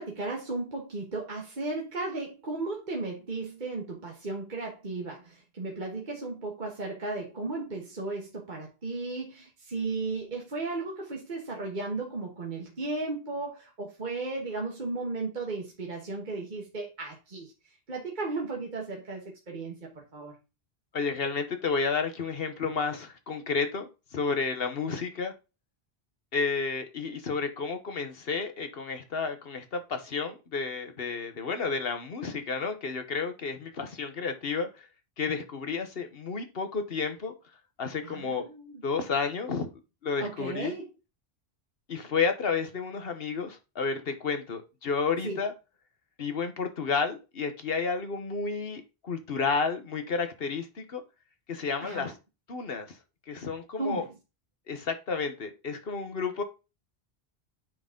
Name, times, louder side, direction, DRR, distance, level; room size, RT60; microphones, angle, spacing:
voice 1, 0.0-17.5 17.9-20.3 38.0-38.8 40.2-40.9 45.2-45.4 51.8-52.1 53.8-54.1, right 3 dB, 45° right, 1.5 m, -35 dB
voice 2, 20.9-25.3 26.3-34.9 35.2-37.3 37.8-38.5 38.8-39.7 40.0-40.7 41.9-45.5 46.2-51.0 51.5-52.1 52.5-53.0 53.3-54.0 54.7-56.4, left 5 dB, 65° left, 1.3 m, -31 dB
9.3 x 4.0 x 3.8 m
omnidirectional pair, 1.1 m